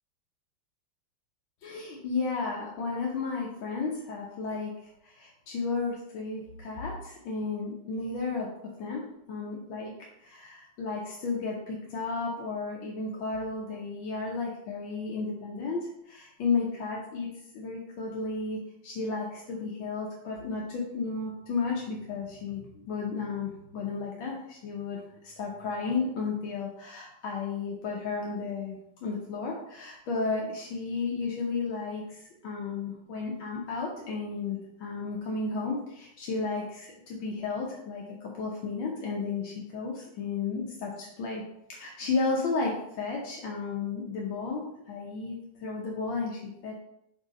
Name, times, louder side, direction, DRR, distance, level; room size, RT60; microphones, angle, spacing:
voice 1, 1.6-4.7 5.0-8.5 8.8-9.9 10.2-17.3 17.5-41.4 41.7-46.8, left 4 dB, 80° left, -2 dB, 1.7 m, -33 dB
7.8 x 2.7 x 5.0 m, 0.81 s
omnidirectional pair, 2.1 m